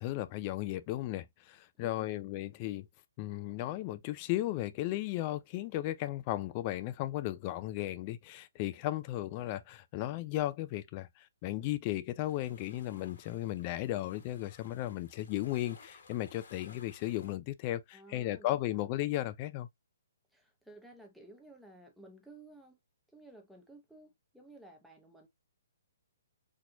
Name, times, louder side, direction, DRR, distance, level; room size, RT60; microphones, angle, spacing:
voice 1, 0.0-2.9 3.2-19.7, left 15 dB, 30° left, 0.4 m, -35 dB
voice 2, 1.8-2.3 17.9-18.9 20.3-22.8 23.1-25.3, right 1 dB, ahead, 0.9 m, -55 dB
sound 1, 12.3-17.3, left 4 dB, 65° left, 1.3 m, -58 dB
4.2 x 2.9 x 2.3 m
hypercardioid pair, 150°, 0 cm